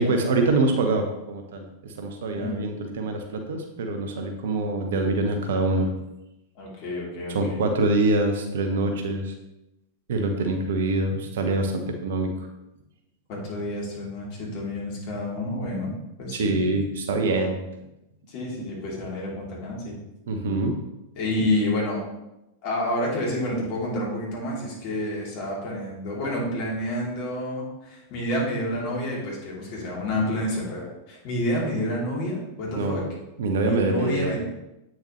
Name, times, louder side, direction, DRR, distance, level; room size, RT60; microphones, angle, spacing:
voice 1, 0.0-5.9 7.3-9.3 10.1-12.5 16.3-17.6 20.3-20.8 32.7-33.0 33.4-34.4, right 2 dB, 60° right, 5 dB, 1.1 m, -25 dB
voice 2, 6.5-7.6 13.3-16.5 18.3-20.0 21.1-22.0 22.6-33.1 33.6-34.4, left 1 dB, 45° left, -4 dB, 2.9 m, -29 dB
8.5 x 6.2 x 3.2 m, 0.92 s
figure-of-eight pair, 90°, 0 cm